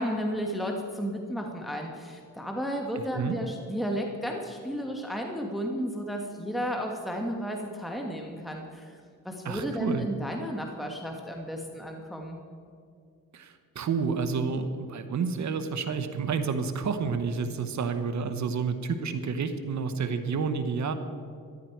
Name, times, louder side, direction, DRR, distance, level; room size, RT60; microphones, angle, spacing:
voice 1, 0.0-9.0 9.2-12.4, equal, ahead, 1 dB, 1.4 m, -33 dB
voice 2, 9.4-10.1 13.3-20.9, right 5 dB, 60° right, 9 dB, 1.1 m, -30 dB
13.5 x 11.5 x 4.6 m, 2.3 s
cardioid pair, 90°, 33 cm